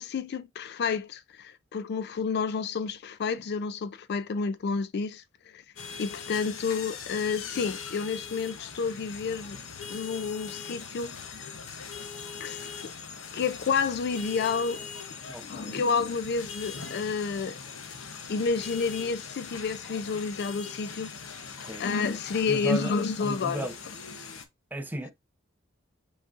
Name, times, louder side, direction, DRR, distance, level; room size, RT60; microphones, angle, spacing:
voice 1, 0.0-5.2 5.5-5.6 6.0-9.6 9.9-11.5 12.4-12.9 13.3-14.8 15.4-17.5 18.3-21.1 21.8-23.7, left 5 dB, 55° left, 0.4 m, -30 dB
sound 1, 5.8-24.4, left 6 dB, 75° left, 0.9 m, -41 dB
voice 2, 15.3-15.8 21.6-21.8 22.5-22.9 23.2-23.7 24.7-25.1, equal, 10° right, 0.5 m, -34 dB
5.3 x 4.0 x 2.5 m
head